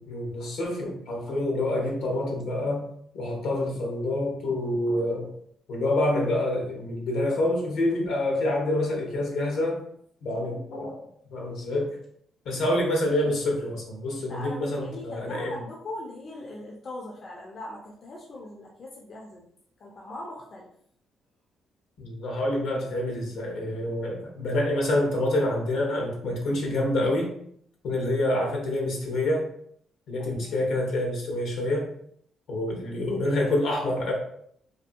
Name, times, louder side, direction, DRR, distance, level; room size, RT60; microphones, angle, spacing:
voice 1, 0.0-2.8 3.1-5.3 5.7-9.8 10.2-11.0 11.3-12.0 12.4-15.6 22.0-27.3 27.8-29.5 30.1-31.9 32.5-34.1, left 1 dB, 75° left, 0 dB, 0.8 m, -27 dB
voice 2, 14.3-19.4 19.8-20.7 30.2-30.6, left 1 dB, 50° left, -2 dB, 0.5 m, -40 dB
2.6 x 2.6 x 2.6 m, 0.67 s
cardioid pair, 90°, 0 cm